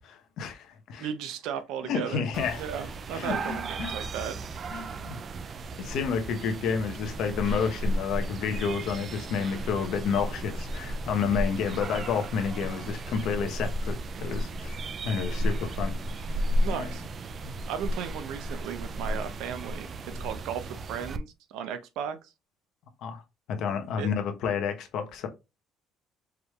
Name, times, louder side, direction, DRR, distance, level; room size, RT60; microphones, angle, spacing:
voice 1, 0.0-1.1 1.8-2.7 3.1-3.9 4.7-5.2 5.8-15.9 16.7-16.9 17.4-17.5 23.0-23.2 23.5-25.3, left 6 dB, 60° left, 0.9 m, -30 dB
voice 2, 1.0-2.2 2.6-4.4 16.6-17.1 17.7-19.9 20.2-22.3 24.0-24.1, right 8 dB, 75° right, 0.6 m, -35 dB
sound 1, 2.3-21.2, right 1 dB, 30° right, 0.3 m, -33 dB
4.7 x 3.2 x 2.3 m
cardioid pair, 175°, 0 cm